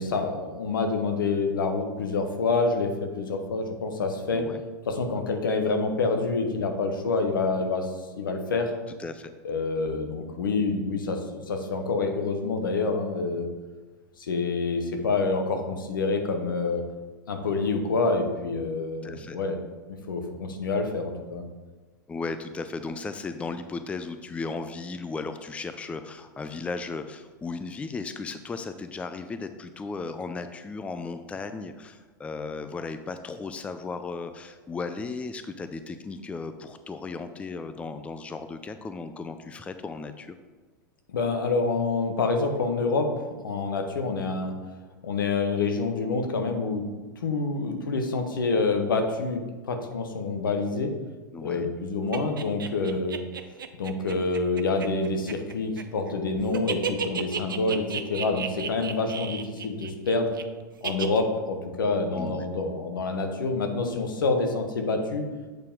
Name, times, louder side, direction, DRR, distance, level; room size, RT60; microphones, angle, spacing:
voice 1, 0.0-4.4 4.9-8.7 9.4-13.5 14.2-16.8 17.3-19.6 19.9-21.4 41.1-43.1 43.4-44.5 45.0-46.8 47.2-50.9 51.4-53.2 53.8-60.3 60.8-65.2, left 3 dB, 80° left, 5 dB, 1.0 m, -27 dB
voice 2, 9.0-9.3 19.0-19.4 22.1-40.4 51.3-51.7 62.1-62.5, left 4 dB, 10° left, 9 dB, 0.4 m, -36 dB
sound 1, 52.1-56.1 56.4-60.4 60.8-61.2, right 7 dB, 85° right, 0.5 m, -33 dB
7.9 x 4.4 x 3.6 m, 1.3 s
hypercardioid pair, 100°, 11 cm